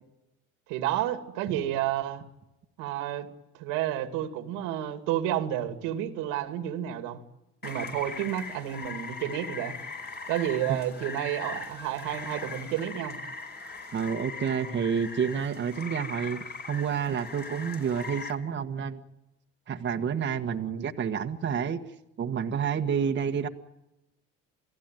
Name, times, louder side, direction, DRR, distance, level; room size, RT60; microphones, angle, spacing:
voice 1, 0.7-2.2 2.8-3.3 3.6-7.2 7.6-9.8 10.3-13.2, right 12 dB, 90° right, 8 dB, 2.5 m, -30 dB
Rain, 7.6-18.3, left 4 dB, 30° left, 4.8 m, -40 dB
voice 2, 13.9-19.0 19.7-21.8 22.2-23.5, right 7 dB, 35° right, 4 dB, 1.6 m, -29 dB
28.5 x 17.5 x 9.2 m, 0.92 s
cardioid pair, 125°, 31 cm